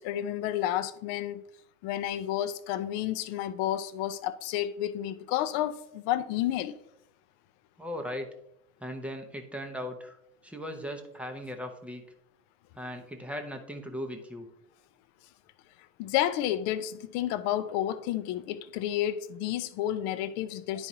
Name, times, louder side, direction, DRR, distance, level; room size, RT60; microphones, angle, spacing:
voice 1, 0.0-1.4 1.8-6.8 16.0-20.9, left 12 dB, 35° left, 0.5 m, -31 dB
voice 2, 7.8-8.3 8.8-10.2 10.4-12.0 12.8-14.5, equal, 5° right, 0.6 m, -38 dB
10.5 x 4.7 x 2.7 m
figure-of-eight pair, 90°, 47 cm